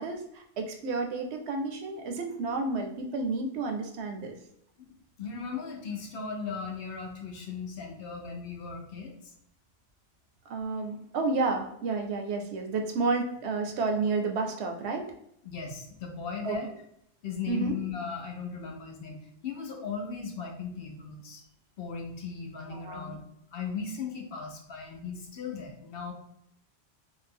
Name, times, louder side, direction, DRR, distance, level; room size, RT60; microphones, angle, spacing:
voice 1, 0.0-4.4 10.5-15.1 16.4-16.6 17.5-17.8 22.7-23.2, right 3 dB, 80° right, 3 dB, 0.8 m, -31 dB
voice 2, 5.2-9.3 15.4-16.7 17.2-21.4 21.8-23.2 23.5-26.1, left 5 dB, 70° left, 1 dB, 0.8 m, -37 dB
2.6 x 2.2 x 3.3 m, 0.75 s
omnidirectional pair, 1.1 m